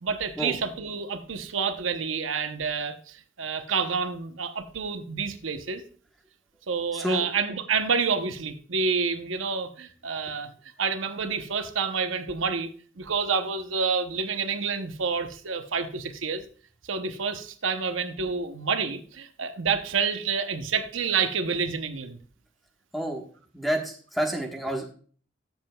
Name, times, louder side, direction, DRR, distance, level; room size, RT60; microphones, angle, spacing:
voice 1, 0.0-5.8 6.7-10.5 10.8-12.7 13.0-16.4 16.9-22.2, right 5 dB, 85° right, 8 dB, 0.8 m, -28 dB
voice 2, 6.9-7.3 22.9-23.2 23.5-24.9, right 1 dB, ahead, 2 dB, 1.3 m, -29 dB
13.0 x 7.3 x 2.3 m, 0.43 s
head